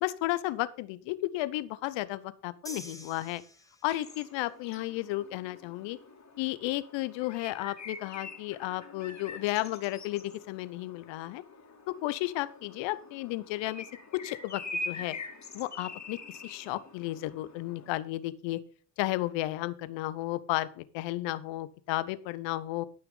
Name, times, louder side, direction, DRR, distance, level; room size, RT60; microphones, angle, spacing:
voice 1, 0.0-3.4 3.8-6.0 6.4-11.4 11.9-13.9 14.1-15.2 15.5-18.6 19.0-22.9, left 17 dB, 80° left, 16 dB, 0.8 m, -33 dB
sound 1, 2.7-4.2, equal, 5° left, 1.8 m, -46 dB
sound 2, 3.9-17.9, left 3 dB, 40° left, 3.1 m, -45 dB
13.0 x 5.9 x 5.5 m, 0.41 s
hypercardioid pair, 45°, 44 cm